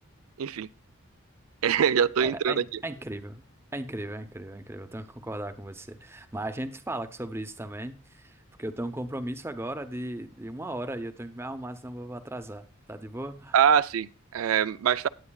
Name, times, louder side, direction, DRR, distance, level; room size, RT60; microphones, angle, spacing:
voice 1, 1.6-2.6 13.5-15.1, right 8 dB, 85° right, 0.4 m, -23 dB
voice 2, 2.2-3.4 3.7-13.6, right 1 dB, 10° right, 0.7 m, -37 dB
18.5 x 8.3 x 2.3 m
head